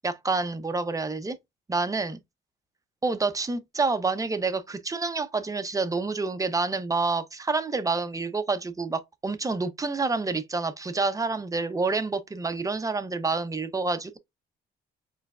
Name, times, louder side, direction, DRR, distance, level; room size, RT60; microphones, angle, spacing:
voice 1, 0.0-1.4 1.7-2.2 3.0-14.2, right 3 dB, 15° right, 0.7 m, -28 dB
4.3 x 3.3 x 2.4 m
cardioid pair, 90°, 20 cm